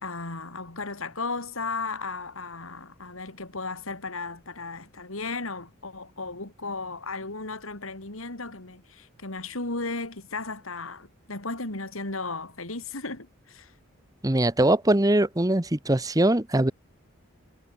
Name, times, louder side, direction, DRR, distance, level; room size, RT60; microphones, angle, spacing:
voice 1, 0.0-13.7, left 3 dB, 90° left, 3.7 m, -35 dB
voice 2, 14.2-16.7, right 1 dB, 15° right, 0.9 m, -22 dB
head